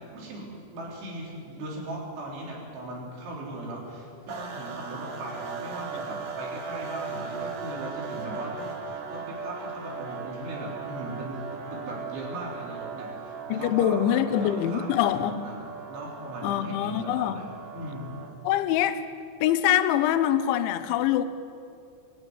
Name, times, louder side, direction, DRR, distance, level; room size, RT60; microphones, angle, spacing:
voice 1, 0.0-15.6 15.9-18.1, right 1 dB, 85° right, -3 dB, 6.4 m, -38 dB
sound 1, 4.3-18.5, right 5 dB, 65° right, 1.4 m, -38 dB
voice 2, 13.5-15.4 16.4-17.4 18.4-19.0 19.4-21.2, left 11 dB, 85° left, 11 dB, 3.2 m, -24 dB
23.5 x 11.5 x 9.7 m, 2.5 s
omnidirectional pair, 5.3 m